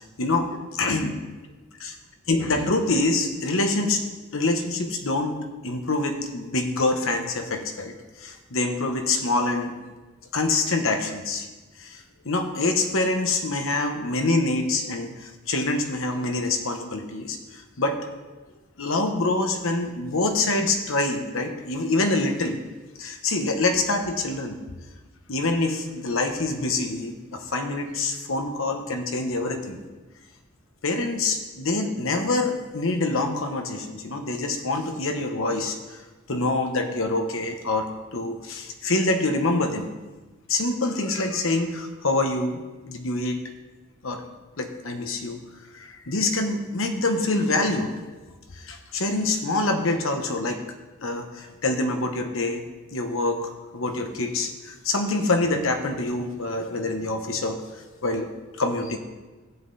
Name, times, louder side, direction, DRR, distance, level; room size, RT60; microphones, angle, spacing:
voice 1, 0.2-1.2 2.3-4.0 4.3-9.8 10.3-11.5 11.8-18.0 18.8-22.6 23.0-24.6 25.3-29.8 30.8-36.0 36.3-39.9 40.5-43.4 44.0-44.2 44.6-45.4 45.7-48.2 48.5-50.6 51.0-52.6 52.9-58.3 58.6-59.0, left 2 dB, 65° left, 5 dB, 1.2 m, -26 dB
13.5 x 7.7 x 4.1 m, 1.2 s
head